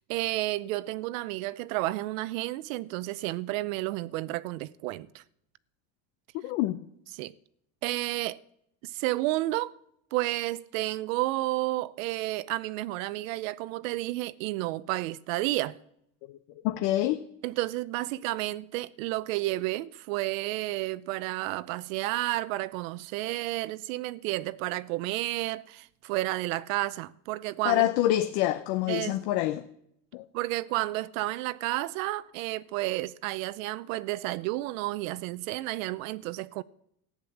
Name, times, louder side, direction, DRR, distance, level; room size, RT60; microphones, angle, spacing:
voice 1, 0.0-5.2 7.1-7.3 7.8-8.4 8.8-9.7 10.1-15.8 17.4-27.9 28.9-29.2 30.3-36.6, right 18 dB, 90° right, 0.7 m, -31 dB
voice 2, 6.4-6.8 16.6-17.2 27.6-29.7 30.1-30.2, left 14 dB, 80° left, 0.9 m, -26 dB
14.0 x 9.7 x 7.2 m
cardioid pair, 130°, 38 cm